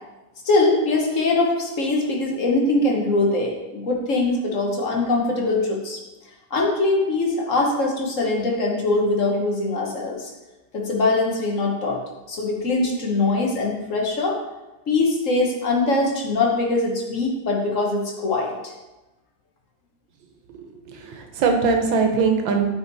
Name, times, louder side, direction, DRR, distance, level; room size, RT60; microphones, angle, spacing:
voice 1, 0.4-6.0 6.5-10.3 10.7-12.0 12.3-14.4 14.9-18.7, left 2 dB, 45° left, 0 dB, 1.5 m, -22 dB
voice 2, 20.5-22.6, right 4 dB, 85° right, 4 dB, 1.7 m, -22 dB
9.1 x 4.7 x 4.1 m, 1.1 s
omnidirectional pair, 2.0 m